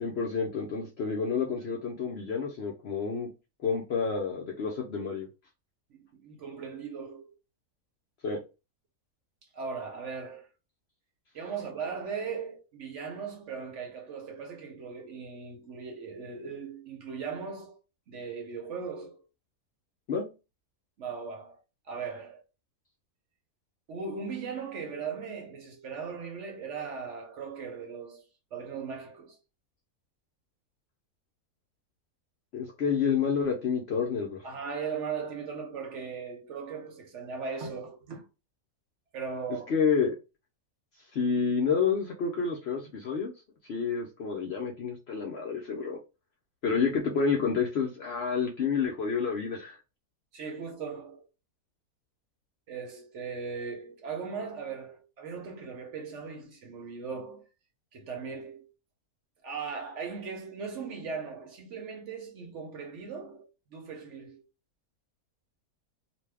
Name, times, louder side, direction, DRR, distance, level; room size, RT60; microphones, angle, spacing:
voice 1, 0.0-3.3 3.6-5.3 8.2-8.4 20.1-20.3 32.5-34.5 39.7-40.2 41.1-43.3 43.7-46.0 46.6-49.8, left 5 dB, 60° left, 0.7 m, -29 dB
voice 2, 5.9-7.3 9.5-10.5 11.3-17.8 18.1-19.2 21.0-21.6 21.9-22.4 23.9-28.2 28.5-29.4 34.4-38.2 39.1-39.7 46.8-46.9 50.3-51.3 52.7-57.5 57.9-58.7 59.4-64.4, right 5 dB, 60° right, 0.9 m, -38 dB
2.6 x 2.2 x 3.3 m
omnidirectional pair, 1.6 m